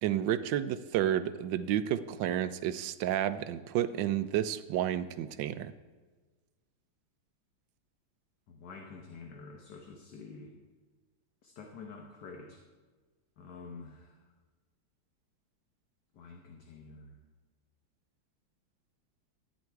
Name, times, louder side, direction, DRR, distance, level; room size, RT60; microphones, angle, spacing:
voice 1, 0.0-5.7, right 11 dB, 75° right, 13 dB, 1.2 m, -31 dB
voice 2, 8.5-10.5 11.4-12.6 13.4-14.1 16.2-17.1, left 4 dB, 60° left, 1 dB, 1.6 m, -48 dB
14.0 x 9.5 x 4.6 m, 1.3 s
omnidirectional pair, 2.2 m